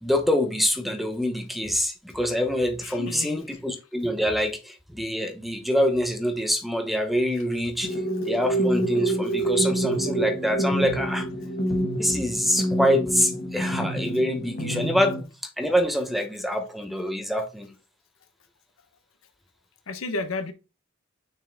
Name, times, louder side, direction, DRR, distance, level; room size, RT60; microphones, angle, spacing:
voice 1, 0.0-8.0 8.2-11.3 12.0-15.2 15.6-17.7, equal, ahead, 0.8 m, -25 dB
voice 2, 2.8-3.6 19.9-20.5, left 3 dB, 90° left, 0.8 m, -32 dB
sound 1, 7.8-15.2, right 1 dB, 45° left, 1.4 m, -27 dB
6.1 x 4.7 x 3.4 m
head